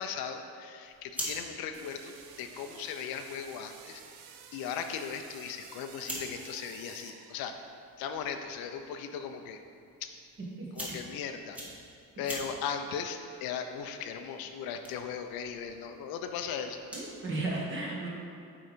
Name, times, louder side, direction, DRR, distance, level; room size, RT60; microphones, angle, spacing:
voice 1, 0.0-4.0 4.5-7.5 8.0-9.6 10.0-10.2 10.7-11.6 12.2-16.8, left 7 dB, 90° left, 6 dB, 0.6 m, -38 dB
sound 1, 0.8-17.2, equal, 5° right, 1.1 m, -47 dB
sound 2, 1.7-7.9, right 7 dB, 90° right, 0.7 m, -52 dB
voice 2, 10.6-11.0 16.9-18.1, right 2 dB, 35° right, -4 dB, 1.4 m, -35 dB
8.6 x 4.0 x 5.1 m, 2.4 s
cardioid pair, 170°, 35 cm